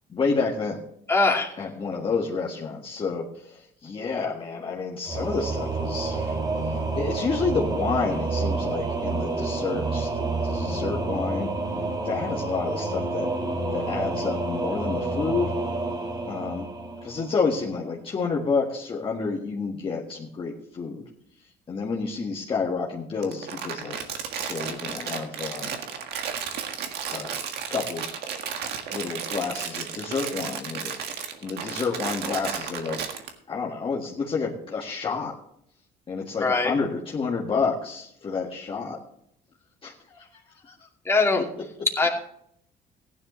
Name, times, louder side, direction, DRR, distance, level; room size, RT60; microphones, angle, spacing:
voice 1, 0.1-0.8 1.6-6.4 7.0-11.5 12.0-13.3 13.7-15.5 16.3-16.7 17.0-21.0 21.7-24.0 24.4-25.7 27.1-27.4 27.7-28.1 28.9-31.0 31.4-33.1 33.5-35.4 36.1-39.0 39.8-40.9, left 4 dB, 30° left, -4 dB, 1.7 m, -29 dB
voice 2, 1.1-1.5 36.4-36.7 41.1-41.4 42.0-42.1, left 3 dB, 15° left, 0 dB, 2.4 m, -21 dB
Singing / Musical instrument, 5.1-17.6, right 3 dB, 25° right, 1.6 m, -29 dB
Crumpling crinkling, 23.2-33.3, right 7 dB, 75° right, 1.7 m, -33 dB
15.5 x 11.0 x 3.2 m, 0.70 s
cardioid pair, 110°, 17 cm